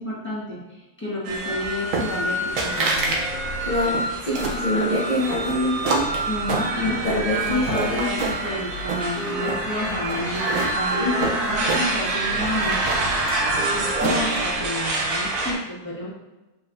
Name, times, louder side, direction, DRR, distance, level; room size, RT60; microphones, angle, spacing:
voice 1, 0.0-3.2 6.3-11.1 11.4-12.8 13.7-16.1, left 1 dB, 10° left, -8 dB, 1.0 m, -30 dB
sound 1, 1.2-15.5, right 2 dB, 85° right, 1.5 m, -27 dB
sound 2, 1.9-2.3 2.6-3.2 3.5-4.6 5.2-7.1 7.5-8.5 8.8-9.6 10.1-12.1 12.4-14.4, right 3 dB, 55° right, 0.9 m, -28 dB
sound 3, 2.4-15.5, left 1 dB, 70° left, 1.2 m, -39 dB
voice 2, 3.6-6.1 6.9-8.1 11.0-11.4, left 1 dB, 85° left, -7 dB, 0.3 m, -25 dB
5.1 x 4.0 x 2.6 m, 1.1 s
omnidirectional pair, 2.0 m